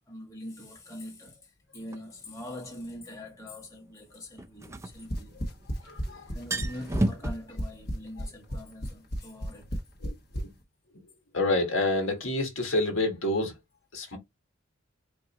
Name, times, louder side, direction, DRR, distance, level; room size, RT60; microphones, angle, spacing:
voice 1, 0.1-5.3 6.3-9.8 14.0-14.1, left 1 dB, 15° left, 1.5 m, -43 dB
sound 1, 1.9-2.0 4.4-5.7 6.0-6.1 6.3-7.3, right 1 dB, 15° right, 0.4 m, -31 dB
sound 2, 4.9-10.5, equal, 50° left, 1.1 m, -32 dB
voice 2, 5.8-6.4 10.0-10.5 11.3-13.6 13.9-14.2, left 2 dB, 85° left, 1.6 m, -28 dB
4.6 x 2.6 x 3.0 m
head